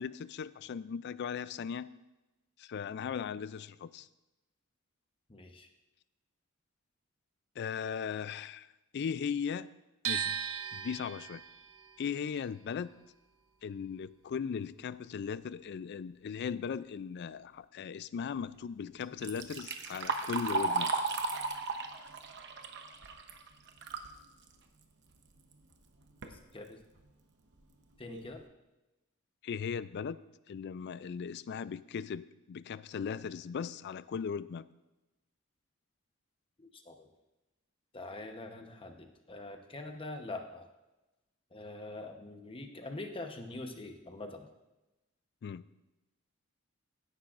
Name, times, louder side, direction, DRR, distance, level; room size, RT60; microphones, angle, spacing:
voice 1, 0.0-1.9 2.6-4.1 7.6-8.7 8.9-9.7 10.0-10.4 10.7-11.4 12.0-12.9 13.6-20.9 29.4-30.2 30.5-34.7 45.4-45.6, left 6 dB, 55° left, 17 dB, 0.3 m, -38 dB
voice 2, 5.3-5.7 26.2-26.8 28.0-28.4 36.6-37.1 37.9-40.7 41.5-44.5, left 2 dB, 25° left, 5 dB, 0.9 m, -44 dB
sound 1, 10.0-16.1 16.3-17.6, right 8 dB, 80° right, 0.6 m, -40 dB
Liquid, 19.0-24.1 24.5-24.6 25.5-25.6 26.0-26.4 27.0-27.1 27.6-27.7 28.1-28.4, right 3 dB, 55° right, 0.9 m, -35 dB
16.0 x 9.9 x 2.5 m, 1.0 s
head